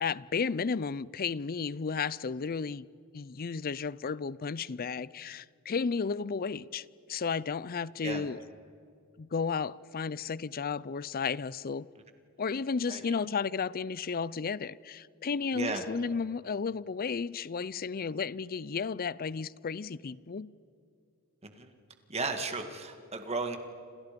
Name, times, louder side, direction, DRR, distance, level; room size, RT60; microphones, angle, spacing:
voice 1, 0.0-2.9 3.1-8.4 9.2-11.9 12.4-20.5, left 5 dB, 45° left, 0.5 m, -33 dB
voice 2, 15.5-15.8 21.4-21.7 22.1-23.6, right 3 dB, 30° right, 2.0 m, -34 dB
28.5 x 27.0 x 5.3 m
head